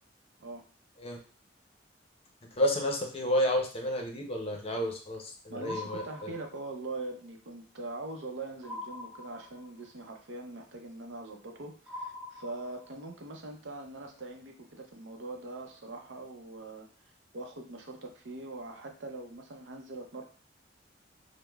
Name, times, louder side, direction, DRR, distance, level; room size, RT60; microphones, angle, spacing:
voice 1, 2.5-6.3, left 1 dB, 30° left, 2 dB, 0.6 m, -31 dB
voice 2, 5.5-16.9 17.3-20.2, right 2 dB, 75° right, 3 dB, 0.6 m, -42 dB
sound 1, 5.6-6.9 8.6-9.9 11.9-13.1, left 2 dB, 15° right, 0.8 m, -43 dB
5.0 x 2.1 x 2.3 m, 0.40 s
head